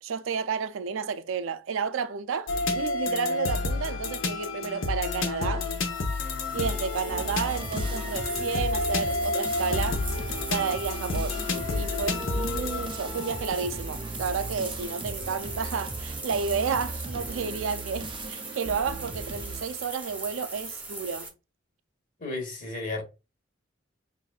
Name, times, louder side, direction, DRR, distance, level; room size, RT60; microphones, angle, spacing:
voice 1, 0.0-5.7 6.5-10.0 10.5-11.4 11.7-21.3, right 6 dB, 90° right, 0.4 m, -31 dB
sound 1, 2.5-13.6, left 3 dB, 85° left, 0.8 m, -30 dB
sound 2, 5.6-21.3, right 3 dB, 10° right, 0.8 m, -41 dB
sound 3, 7.1-19.6, right 3 dB, 25° right, 0.4 m, -37 dB
voice 2, 22.2-23.0, left 2 dB, 40° left, 1.4 m, -33 dB
5.7 x 2.6 x 2.3 m
head